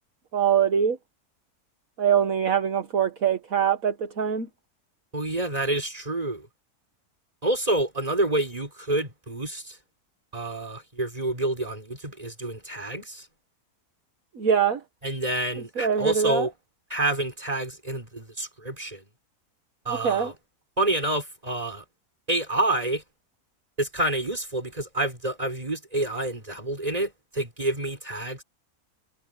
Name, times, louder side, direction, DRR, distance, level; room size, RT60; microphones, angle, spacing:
voice 1, 0.3-1.0 2.0-4.5 14.4-14.8 15.8-16.5 19.9-20.3, right 8 dB, 60° right, 1.8 m, -23 dB
voice 2, 5.1-6.5 7.4-9.8 10.3-13.3 15.0-16.5 16.9-19.1 19.8-20.3 20.8-21.8 22.3-23.0 23.8-28.4, right 1 dB, 25° right, 4.8 m, -28 dB
omnidirectional pair, 1.6 m